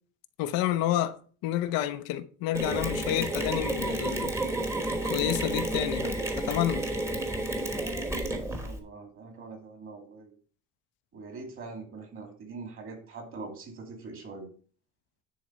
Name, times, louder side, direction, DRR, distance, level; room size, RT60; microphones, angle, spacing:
voice 1, 0.4-1.2 1.4-4.3 5.0-6.8, left 12 dB, 85° left, 0.8 m, -29 dB
Mechanisms, 2.5-8.8, right 1 dB, 10° right, 1.2 m, -31 dB
voice 2, 8.6-10.3 11.1-14.5, right 4 dB, 40° right, 2.5 m, -43 dB
10.5 x 4.1 x 5.6 m
cardioid pair, 170°, 34 cm